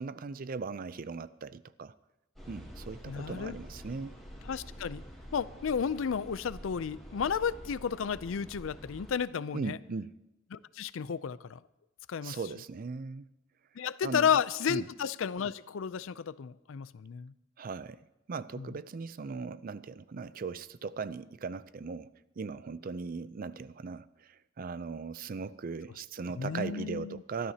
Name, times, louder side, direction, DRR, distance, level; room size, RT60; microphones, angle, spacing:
voice 1, 0.0-1.9 2.5-4.1 9.5-10.1 12.2-13.3 14.0-14.3 14.7-14.9 17.6-18.0 18.3-27.5, right 4 dB, 45° right, 0.4 m, -39 dB
sound 1, 2.4-9.1, equal, ahead, 3.4 m, -47 dB
voice 2, 3.1-3.6 4.5-5.0 5.3-9.8 10.5-11.6 12.1-12.4 13.8-17.3 18.6-18.7 26.4-27.2, left 7 dB, 80° left, 0.4 m, -32 dB
24.0 x 12.5 x 2.8 m
head